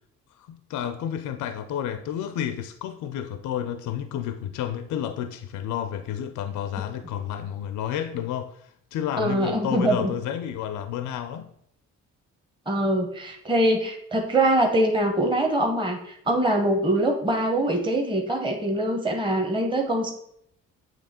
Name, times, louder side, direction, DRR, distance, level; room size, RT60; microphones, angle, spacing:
voice 1, 0.4-11.5, left 10 dB, 75° left, 0.5 m, -31 dB
voice 2, 9.2-10.1 12.7-20.1, right 1 dB, 15° right, 1.0 m, -23 dB
7.7 x 2.9 x 4.2 m
cardioid pair, 90°, 30 cm